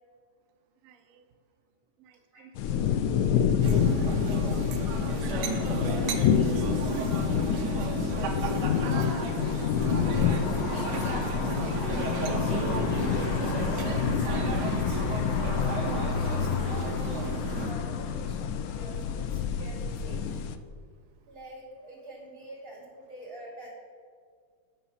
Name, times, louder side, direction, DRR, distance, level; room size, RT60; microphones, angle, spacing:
voice 1, 0.8-1.2 2.0-3.0 3.3-4.2 4.4-4.9 7.9-10.1 10.5-12.1, right 7 dB, 80° right, 7 dB, 0.7 m, -48 dB
sound 1, 2.5-20.6, left 7 dB, 90° left, 0.7 m, -28 dB
sound 2, 3.6-17.7, right 5 dB, 65° right, 1.3 m, -33 dB
voice 2, 5.6-7.3 12.6-12.7 13.2-20.2 21.3-23.7, right 1 dB, 35° right, -5 dB, 3.0 m, -45 dB
9.3 x 6.0 x 5.7 m, 2.1 s
omnidirectional pair, 2.1 m